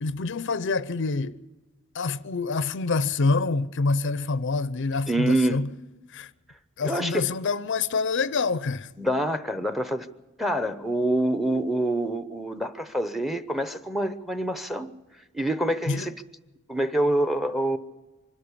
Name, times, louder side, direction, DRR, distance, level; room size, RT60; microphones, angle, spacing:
voice 1, 0.0-1.4 1.9-5.7 6.1-6.3 6.8-8.9 15.9-16.1, left 4 dB, 60° left, 0.6 m, -26 dB
voice 2, 5.1-5.6 6.8-7.2 9.0-10.1 10.4-14.9 15.3-16.1 16.7-17.8, right 1 dB, ahead, 0.8 m, -26 dB
24.5 x 13.0 x 8.5 m
head